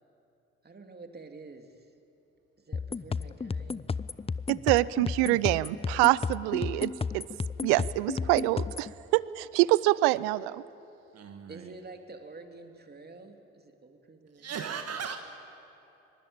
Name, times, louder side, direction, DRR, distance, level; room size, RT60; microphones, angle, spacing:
voice 1, 0.6-1.9 2.6-3.9 11.5-14.6, right 3 dB, 30° right, 5 dB, 2.9 m, -48 dB
sound 1, 2.7-8.9, left 5 dB, 20° left, 0.6 m, -33 dB
voice 2, 4.5-7.2 7.6-10.6, right 19 dB, 85° right, 20 dB, 0.5 m, -25 dB
voice 3, 11.1-11.7 14.3-15.2, right 7 dB, 55° right, 6 dB, 1.6 m, -37 dB
25.0 x 20.0 x 8.8 m, 2.9 s
hypercardioid pair, 50°, 30 cm